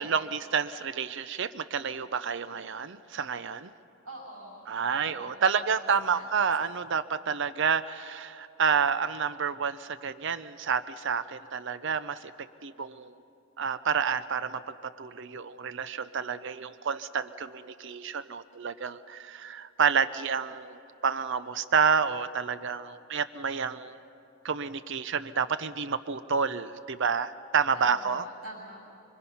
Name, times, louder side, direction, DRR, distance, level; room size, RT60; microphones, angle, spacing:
voice 1, 0.0-3.7 4.7-12.3 12.6-13.1 13.6-24.0 24.4-28.3, right 6 dB, 55° right, 13 dB, 0.6 m, -29 dB
voice 2, 4.0-5.7 6.1-6.3 27.7-28.8, right 1 dB, 85° right, -1 dB, 7.4 m, -46 dB
25.0 x 24.0 x 5.6 m, 2.7 s
head